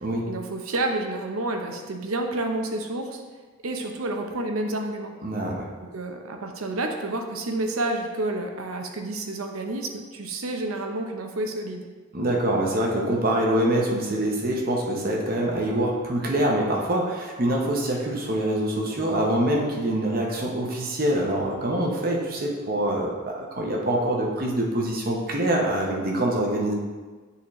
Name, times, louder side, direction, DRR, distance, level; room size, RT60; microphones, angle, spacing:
voice 1, 0.3-3.2 3.6-5.1 5.9-11.9, right 2 dB, 85° right, 4 dB, 0.7 m, -29 dB
voice 2, 5.2-5.7 12.1-26.7, right 1 dB, 45° right, -1 dB, 0.8 m, -25 dB
8.5 x 4.0 x 3.1 m, 1.4 s
head